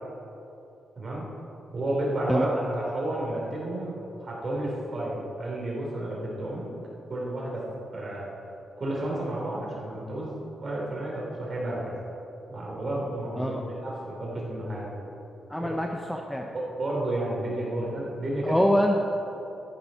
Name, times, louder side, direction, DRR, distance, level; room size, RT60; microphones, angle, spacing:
voice 1, 1.0-1.3 1.7-6.7 7.1-7.6 7.9-8.3 8.8-12.0 12.5-15.1 15.6-15.7 16.5-18.6, right 1 dB, 30° right, -4 dB, 3.0 m, -31 dB
voice 2, 15.5-16.5 18.4-19.0, equal, 5° left, 2 dB, 0.6 m, -25 dB
13.0 x 7.1 x 5.6 m, 2.9 s
wide cardioid pair, 150°, 0 cm